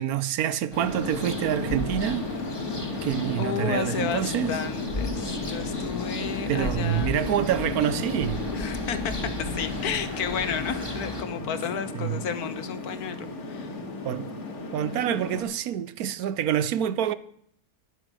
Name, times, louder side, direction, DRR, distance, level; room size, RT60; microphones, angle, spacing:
voice 1, 0.0-2.2 3.0-4.6 6.5-8.4 11.9-12.2 14.0-14.3 14.7-17.1, right 10 dB, 70° right, 1.1 m, -27 dB
sound 1, 0.7-15.4, left 3 dB, 50° left, 1.7 m, -34 dB
sound 2, 0.7-11.2, left 2 dB, 15° left, 1.5 m, -37 dB
sound 3, 0.7-7.0, right 2 dB, 25° right, 1.5 m, -49 dB
voice 2, 3.4-7.1 8.5-9.1 9.4-13.8, left 7 dB, 70° left, 1.4 m, -32 dB
10.5 x 8.9 x 6.2 m
omnidirectional pair, 1.7 m